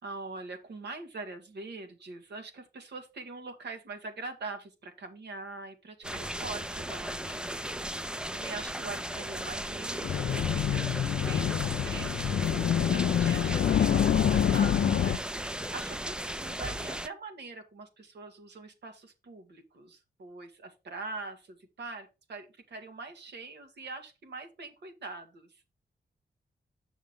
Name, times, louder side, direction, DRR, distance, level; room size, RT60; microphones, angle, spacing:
voice 1, 0.0-7.7 8.3-12.3 12.8-25.6, right 3 dB, 75° right, 5 dB, 1.8 m, -43 dB
sound 1, 6.0-17.1, right 1 dB, 5° right, 0.4 m, -36 dB
sound 2, 6.0-13.2, right 1 dB, 55° right, 2.5 m, -51 dB
sound 3, 10.0-15.2, left 9 dB, 65° left, 0.5 m, -26 dB
8.1 x 6.3 x 3.6 m, 0.28 s
wide cardioid pair, 130°, 18 cm